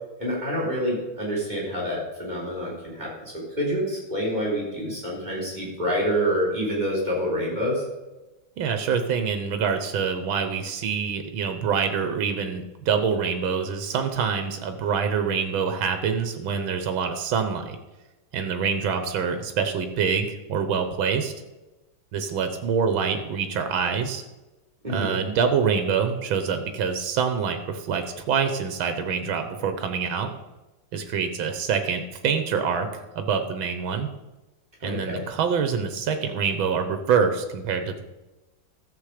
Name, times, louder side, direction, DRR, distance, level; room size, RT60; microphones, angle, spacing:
voice 1, 0.2-7.8 24.8-25.2 34.8-35.3, equal, 20° right, -5 dB, 4.1 m, -27 dB
voice 2, 8.6-17.8 18.3-21.3 22.1-24.2 24.9-30.3 30.9-32.9 33.2-34.1 34.8-38.1, right 6 dB, 90° right, 8 dB, 1.8 m, -25 dB
13.5 x 7.3 x 5.0 m, 1.1 s
omnidirectional pair, 2.1 m